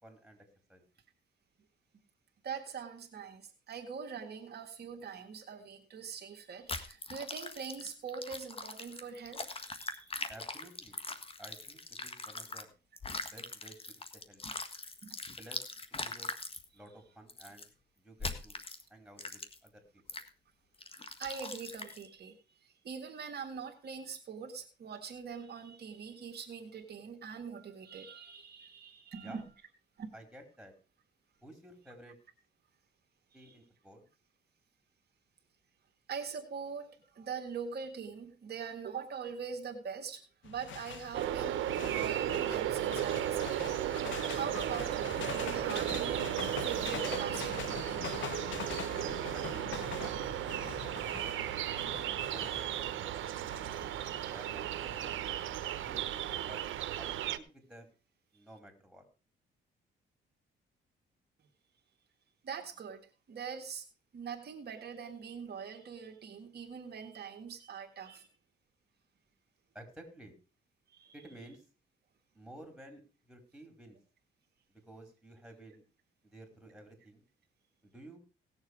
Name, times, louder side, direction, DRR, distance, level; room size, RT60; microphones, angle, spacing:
voice 1, 0.0-0.8 10.3-11.0 11.4-12.7 13.2-14.6 15.4-15.6 16.0-16.3 16.7-17.7 18.0-18.6 18.9-20.2 29.1-29.5 30.1-30.7 31.4-32.2 33.3-34.1 48.9-51.2 52.2-53.4 54.2-55.2 55.8-56.6 57.0-57.9 58.3-59.0 69.7-70.3 71.1-71.6 72.3-74.0 74.7-75.8 76.2-77.3 77.8-78.2, right 1 dB, ahead, 3 dB, 4.8 m, -53 dB
voice 2, 2.4-10.2 15.0-15.2 20.9-29.4 30.0-30.1 33.4-33.5 36.1-46.3 46.6-48.1 53.8-54.7 62.4-63.0 63.3-63.8 64.1-68.3 70.9-71.1, right 6 dB, 55° right, 3 dB, 1.8 m, -43 dB
sound 1, 6.7-12.6 13.0-16.6 17.3-17.7 18.2-18.8 19.2-19.7 20.1-20.3 20.8-22.1, left 3 dB, 30° left, 1.6 m, -42 dB
sound 2, 40.4-56.4, left 9 dB, 70° left, 1.1 m, -44 dB
sound 3, 41.1-57.4, right 12 dB, 75° right, 1.0 m, -35 dB
18.0 x 7.2 x 4.9 m, 0.34 s
cardioid pair, 90°, 20 cm